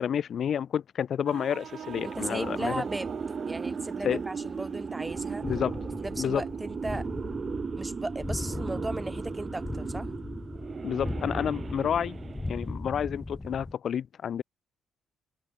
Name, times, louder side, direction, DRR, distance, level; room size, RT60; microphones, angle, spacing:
voice 1, 0.0-2.8 4.0-4.2 5.4-5.8 6.2-6.4 10.8-12.2 12.5-14.4, left 8 dB, 60° left, 0.6 m, -30 dB
sound 1, 1.3-7.9, right 9 dB, 65° right, 2.9 m, -44 dB
sound 2, 1.6-12.7, right 5 dB, 40° right, 0.8 m, -37 dB
voice 2, 2.0-3.1 3.5-5.4 6.0-7.1 7.8-10.1, right 2 dB, 15° right, 2.5 m, -36 dB
sound 3, 5.1-13.7, left 2 dB, 15° left, 3.6 m, -38 dB
open air
cardioid pair, 90°, 0 cm